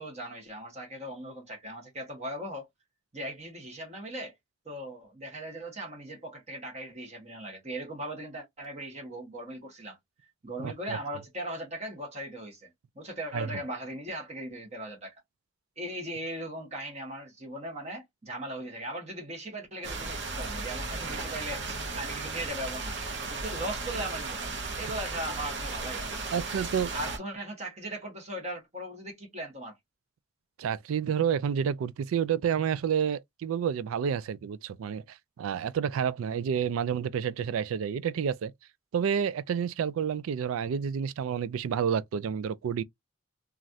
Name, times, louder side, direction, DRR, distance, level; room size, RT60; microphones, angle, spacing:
voice 1, 0.0-2.7 3.1-4.3 4.6-10.0 10.4-12.7 12.9-15.1 15.8-21.7 21.9-23.0 23.3-24.5 24.8-26.4 26.9-29.8, right 1 dB, 30° right, 1.2 m, -38 dB
voice 2, 10.6-11.0 13.3-13.6 26.3-26.9 30.6-38.5 38.9-42.8, right 7 dB, 75° right, 0.3 m, -29 dB
sound 1, 19.8-27.2, right 3 dB, 55° right, 0.9 m, -35 dB
3.1 x 2.4 x 2.6 m
head